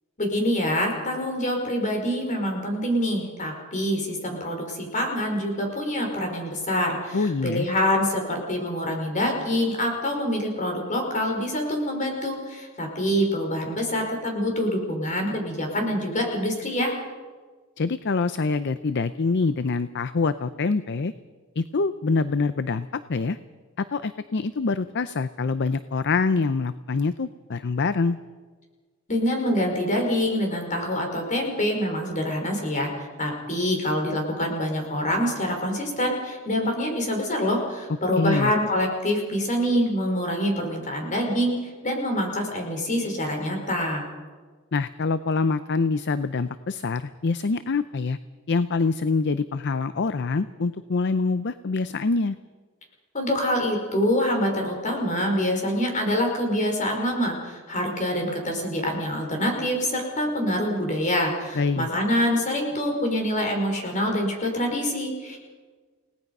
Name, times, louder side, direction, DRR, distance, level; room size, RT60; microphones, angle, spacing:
voice 1, 0.2-16.9 29.1-44.0 53.1-65.4, equal, 35° left, 2 dB, 5.1 m, -26 dB
voice 2, 7.1-7.7 17.8-21.1 21.6-23.4 23.8-28.2 38.1-38.5 44.7-48.2 48.5-52.4 61.5-61.9, left 4 dB, 55° left, 13 dB, 0.6 m, -25 dB
29.5 x 18.5 x 5.5 m, 1.4 s
head